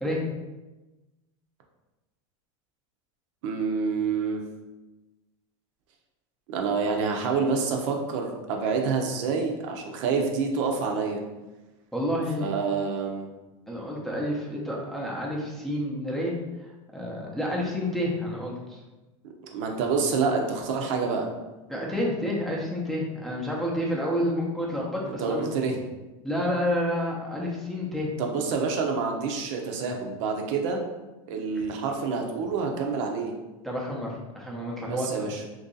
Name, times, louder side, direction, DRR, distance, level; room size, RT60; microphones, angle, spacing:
voice 1, 3.4-4.4 6.5-11.2 12.4-13.3 19.2-21.3 25.1-25.8 28.2-30.8 31.3-33.3 34.8-35.4, right 5 dB, 65° right, 2 dB, 0.6 m, -27 dB
voice 2, 11.9-12.5 13.7-16.4 16.9-18.8 21.7-25.5 26.2-28.1 31.5-31.6 33.6-35.3, equal, ahead, -4 dB, 0.6 m, -29 dB
2.9 x 2.7 x 3.8 m, 1.1 s
supercardioid pair, 130°, 18 cm